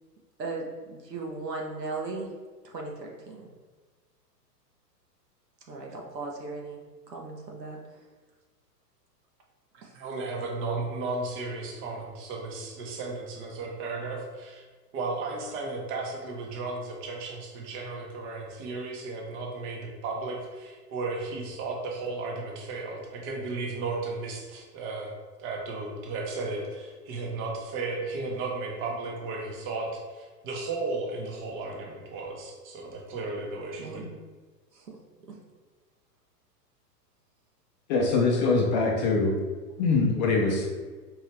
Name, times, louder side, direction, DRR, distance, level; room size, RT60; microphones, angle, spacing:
voice 1, 0.4-2.3 2.6-3.5 5.7-6.8 7.1-7.8 9.8-9.9 33.8-34.2 34.7-34.9, right 3 dB, 80° right, -1 dB, 1.1 m, -37 dB
voice 2, 9.9-14.6 14.9-25.1 25.4-34.0, right 3 dB, 25° right, -1 dB, 0.8 m, -34 dB
voice 3, 37.9-39.4 39.8-40.7, left 3 dB, 30° left, -1 dB, 0.5 m, -23 dB
4.5 x 2.7 x 3.3 m, 1.4 s
figure-of-eight pair, 105°, 49 cm